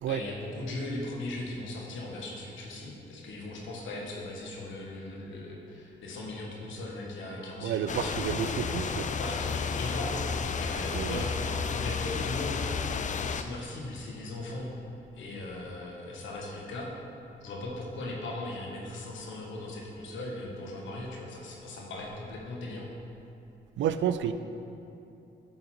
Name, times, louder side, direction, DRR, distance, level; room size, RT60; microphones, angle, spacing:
voice 1, 0.0-8.3 9.2-12.6 13.3-14.7 15.1-16.9 17.4-22.9, left 2 dB, 80° left, -2 dB, 1.4 m, -38 dB
voice 2, 7.6-9.1 10.9-11.2 23.8-24.3, right 9 dB, 75° right, 11 dB, 0.4 m, -30 dB
sound 1, 7.9-13.4, left 5 dB, 40° left, 0.4 m, -32 dB
10.5 x 3.9 x 4.4 m, 2.9 s
cardioid pair, 65°, 19 cm